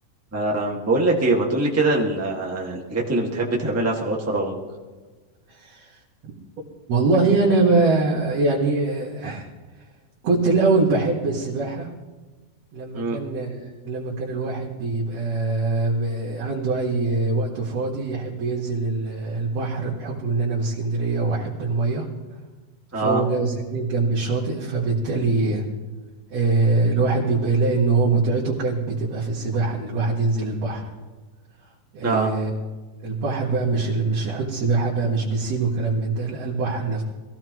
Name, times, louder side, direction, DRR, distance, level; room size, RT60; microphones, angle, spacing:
voice 1, 0.3-4.5 12.9-13.2 22.9-23.2 32.0-32.3, right 2 dB, 5° right, -3 dB, 1.4 m, -23 dB
voice 2, 5.5-6.3 6.9-9.5 10.2-11.9 12.7-22.1 22.9-25.6 26.3-30.9 31.9-32.6 33.0-37.0, right 3 dB, 60° right, -6 dB, 2.9 m, -23 dB
23.0 x 15.5 x 3.1 m, 1.3 s
omnidirectional pair, 3.4 m